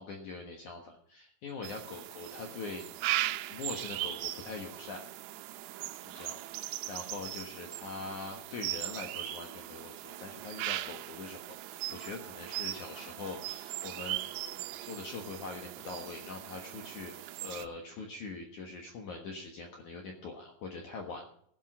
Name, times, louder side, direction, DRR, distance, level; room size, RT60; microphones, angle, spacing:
voice 1, 0.0-3.1 3.5-5.0 6.0-21.2, left 4 dB, 85° left, 1 dB, 1.7 m, -43 dB
sound 1, 1.6-17.7, right 15 dB, 85° right, 3.4 m, -39 dB
16.5 x 7.8 x 5.4 m, 0.66 s
omnidirectional pair, 5.9 m